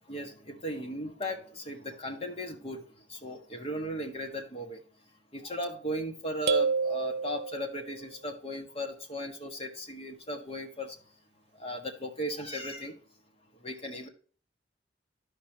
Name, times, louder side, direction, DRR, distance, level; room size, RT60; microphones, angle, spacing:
voice 1, 0.1-2.8 3.1-4.8 5.3-11.0 11.6-12.9 13.6-14.1, equal, 35° left, 3 dB, 1.5 m, -37 dB
sound 1, 6.5-8.0, right 4 dB, 65° right, 0.5 m, -29 dB
12.5 x 5.2 x 3.0 m, 0.42 s
head